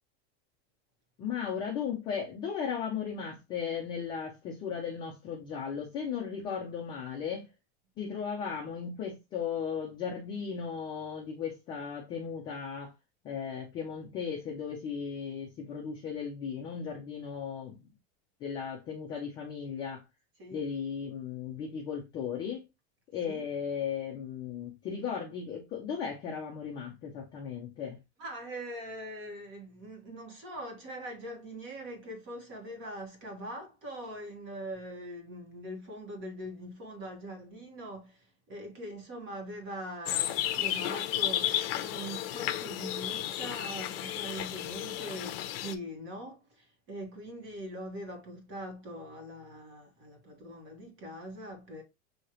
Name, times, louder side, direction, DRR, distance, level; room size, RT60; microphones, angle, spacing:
voice 1, 1.2-7.5 8.0-12.9 13.2-17.8 18.4-20.0 20.5-22.6 23.1-28.0, left 7 dB, 15° left, 0.3 m, -36 dB
voice 2, 28.2-51.8, right 1 dB, 35° right, 1.4 m, -42 dB
sound 1, 40.0-45.7, left 12 dB, 55° left, 0.7 m, -33 dB
6.3 x 2.8 x 2.9 m
supercardioid pair, 170°, 36 cm